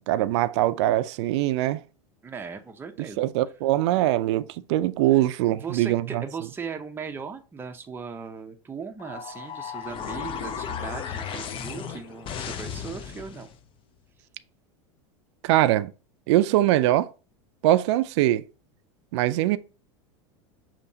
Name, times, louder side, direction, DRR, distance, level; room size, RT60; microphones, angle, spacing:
voice 1, 0.0-1.8 3.2-4.4 4.7-6.2 15.4-15.9 16.3-17.1 17.6-18.4 19.1-19.6, right 14 dB, 70° right, 0.4 m, -22 dB
voice 2, 2.2-3.3 5.1-13.5, right 5 dB, 15° right, 0.6 m, -38 dB
sound 1, 9.0-13.6, left 7 dB, 35° left, 0.6 m, -35 dB
6.7 x 2.8 x 2.7 m
hypercardioid pair, 110°, 15 cm